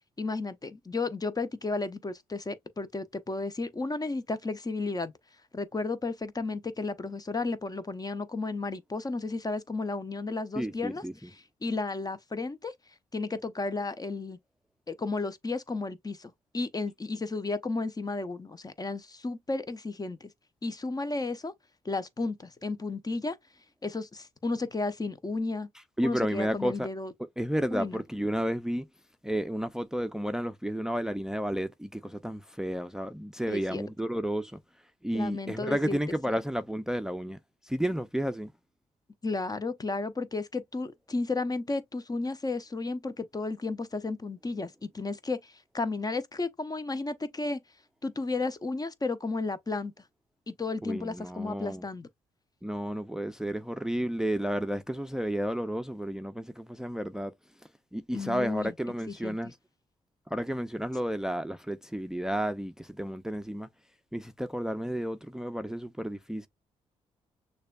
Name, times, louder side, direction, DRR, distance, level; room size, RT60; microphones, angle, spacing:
voice 1, 0.2-5.1 5.5-11.0 11.6-12.7 13.1-14.4 14.9-20.3 20.6-21.5 21.8-23.4 23.8-25.7 26.0-27.1 27.7-28.0 33.5-33.8 35.1-36.0 39.2-47.6 48.0-49.9 50.5-52.1 58.1-58.7 59.1-59.4, left 3 dB, 25° left, 0.7 m, -33 dB
voice 2, 10.6-11.3 26.0-26.9 27.4-28.9 29.2-34.6 35.0-38.5 50.8-51.8 52.6-57.3 57.9-59.6 60.3-63.7 64.1-66.5, equal, 5° right, 0.6 m, -32 dB
6.4 x 2.3 x 2.3 m
hypercardioid pair, 45°, 14 cm